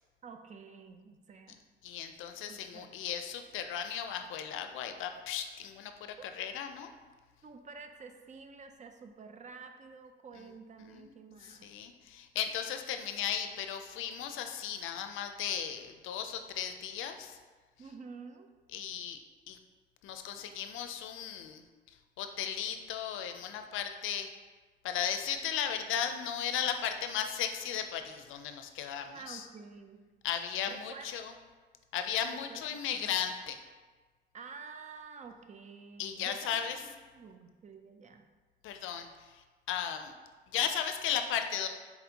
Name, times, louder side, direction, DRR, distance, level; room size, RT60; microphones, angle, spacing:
voice 1, 0.2-1.6 2.5-2.9 6.2-6.3 7.4-11.7 17.8-18.5 29.1-30.0 30.7-31.1 32.3-32.6 32.9-33.2 34.3-38.3, right 5 dB, 40° right, 6 dB, 0.5 m, -49 dB
voice 2, 1.8-6.9 10.9-11.1 11.5-17.4 18.7-19.2 19.5-19.6 20.0-21.6 22.2-24.3 24.8-29.5 30.2-31.3 31.9-33.6 36.0-36.8 38.6-39.1 39.3-40.1 40.5-41.7, left 9 dB, 85° left, 7 dB, 0.4 m, -36 dB
4.2 x 4.1 x 2.8 m, 1.4 s
cardioid pair, 90°, 20 cm